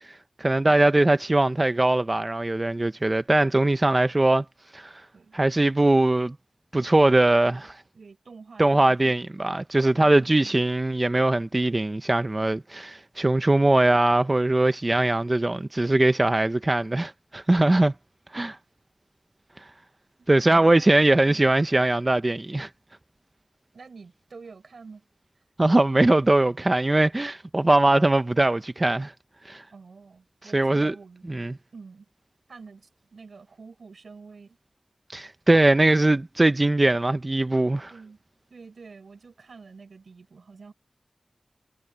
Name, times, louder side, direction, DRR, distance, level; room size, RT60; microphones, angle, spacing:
voice 1, 0.0-4.4 4.7-5.0 5.3-6.3 6.7-7.8 8.6-17.9 18.3-18.6 19.6-19.7 20.3-22.7 25.6-29.1 29.4-29.6 30.4-30.9 31.3-31.6 35.1-37.9, right 2 dB, 30° right, 0.7 m, -21 dB
voice 2, 7.9-9.1 9.9-10.6 20.2-21.4 23.7-25.1 29.7-31.2 31.7-32.1 32.5-34.6 35.9-36.0 37.9-38.2 38.5-40.7, right 4 dB, 85° right, 6.7 m, -47 dB
wide cardioid pair, 65°, 0 cm